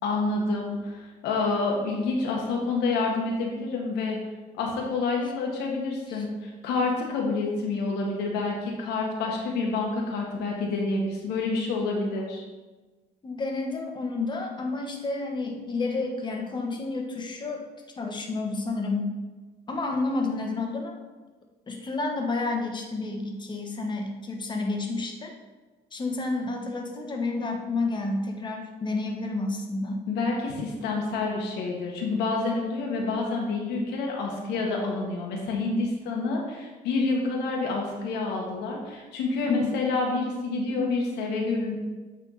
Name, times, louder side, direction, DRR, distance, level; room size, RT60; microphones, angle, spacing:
voice 1, 0.0-4.2 4.5-12.4 30.1-41.8, left 3 dB, 90° left, 0 dB, 1.5 m, -28 dB
voice 2, 13.2-17.7 18.0-19.1 19.7-20.9 21.7-25.3 25.9-30.0 39.5-39.7, left 3 dB, 25° left, 2 dB, 1.2 m, -30 dB
8.9 x 3.6 x 4.0 m, 1.3 s
cardioid pair, 110°, 17 cm